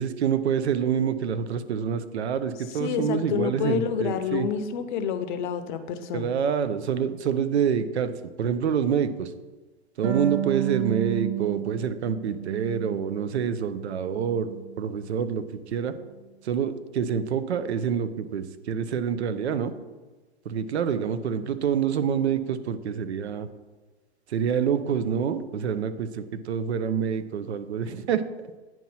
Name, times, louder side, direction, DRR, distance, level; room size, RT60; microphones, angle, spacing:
voice 1, 0.0-4.5 6.1-8.1 8.4-9.3 10.0-15.9 16.4-19.7 20.5-23.5 24.3-28.2, right 7 dB, 70° right, 12 dB, 0.6 m, -27 dB
voice 2, 2.8-6.3, left 7 dB, 45° left, 7 dB, 0.7 m, -28 dB
Harp, 10.0-13.4 13.8-14.8, right 12 dB, 25° right, 0.7 m, -32 dB
8.9 x 3.0 x 5.5 m, 1.2 s
hypercardioid pair, 115°, 34 cm